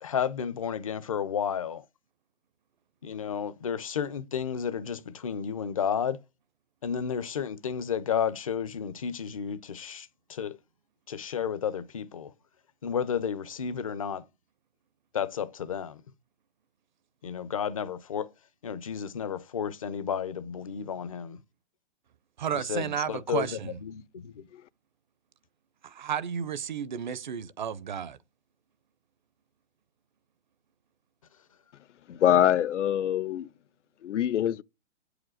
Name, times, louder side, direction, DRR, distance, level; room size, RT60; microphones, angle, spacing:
voice 1, 0.0-1.8 3.0-6.2 6.8-10.6 11.1-12.3 12.8-14.2 15.1-16.0 17.2-18.3 18.6-21.4 22.7-24.5, left 7 dB, 30° left, 0.5 m, -32 dB
voice 2, 22.4-23.8 25.8-28.2, right 8 dB, 40° right, 0.5 m, -32 dB
voice 3, 32.1-33.5 34.0-34.6, left 11 dB, 80° left, 0.6 m, -24 dB
8.4 x 4.9 x 6.3 m
hypercardioid pair, 170°, 36 cm